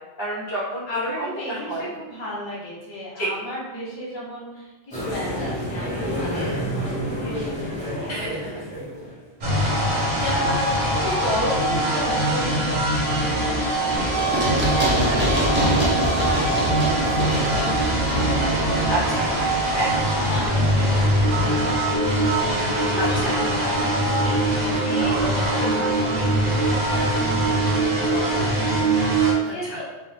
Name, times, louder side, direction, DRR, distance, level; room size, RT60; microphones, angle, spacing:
voice 1, 0.2-1.0 1.5-1.9 3.2-3.3 6.3-6.6 8.1-8.6 10.3-10.6 14.4-14.7 18.9-19.3 19.7-19.9 23.0-23.3 25.0-25.8 28.2-28.5 29.4-29.8, right 1 dB, 55° left, -7 dB, 0.9 m, -30 dB
voice 2, 0.9-8.1 10.1-10.7 11.0-13.1 13.4-14.1 14.7-19.0 20.3-24.4 24.7-30.0, left 1 dB, 30° left, -7 dB, 0.6 m, -34 dB
sound 1, 4.9-9.3, equal, 5° left, 0.9 m, -29 dB
sound 2, 9.4-29.3, right 1 dB, 50° right, 0.7 m, -22 dB
Run, 14.0-21.6, right 1 dB, 20° right, 0.4 m, -26 dB
2.1 x 2.1 x 3.1 m, 1.1 s
omnidirectional pair, 1.1 m